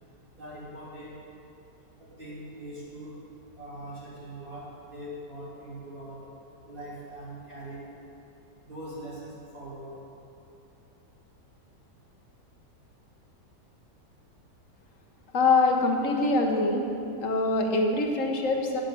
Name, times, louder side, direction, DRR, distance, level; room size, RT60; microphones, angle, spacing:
voice 1, 0.4-1.1 2.0-3.1 3.6-6.2 6.6-7.8 8.6-9.9, right 1 dB, 30° right, -9 dB, 3.3 m, -42 dB
voice 2, 15.3-16.8 17.2-18.8, left 3 dB, 50° left, 2 dB, 1.4 m, -24 dB
8.1 x 7.6 x 8.2 m, 2.8 s
omnidirectional pair, 1.9 m